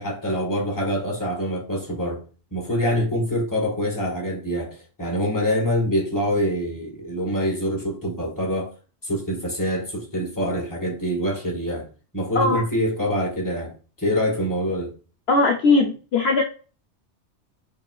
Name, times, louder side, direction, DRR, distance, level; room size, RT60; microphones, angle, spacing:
voice 1, 0.0-2.2 2.5-8.7 9.0-11.9 12.1-14.9, equal, 15° left, 1.4 m, -25 dB
voice 2, 15.3-16.4, left 3 dB, 65° left, 0.9 m, -19 dB
5.2 x 3.0 x 2.3 m
omnidirectional pair, 1.2 m